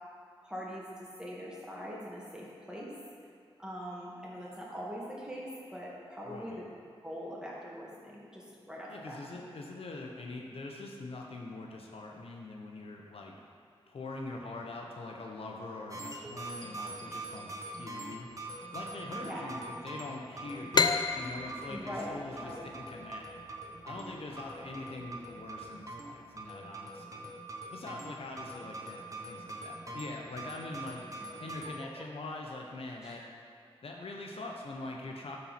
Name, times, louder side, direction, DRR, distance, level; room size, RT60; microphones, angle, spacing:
voice 1, 0.4-2.9 3.6-6.7 7.0-9.2 19.1-19.5 21.7-22.6 31.2-31.3 31.8-32.0 33.0-33.2, equal, 5° right, -5 dB, 2.1 m, -42 dB
voice 2, 6.2-6.6 8.9-13.3 13.9-18.3 18.7-20.8 21.1-23.3 23.8-27.3 27.7-31.0 31.4-33.2 33.8-35.4, left 2 dB, 65° left, 0 dB, 0.9 m, -43 dB
sound 1, 15.9-31.7, right 2 dB, 30° right, 1.0 m, -43 dB
sound 2, 20.7-24.2, left 4 dB, 45° left, 0.4 m, -31 dB
12.0 x 4.3 x 4.3 m, 2.4 s
cardioid pair, 60°, 10 cm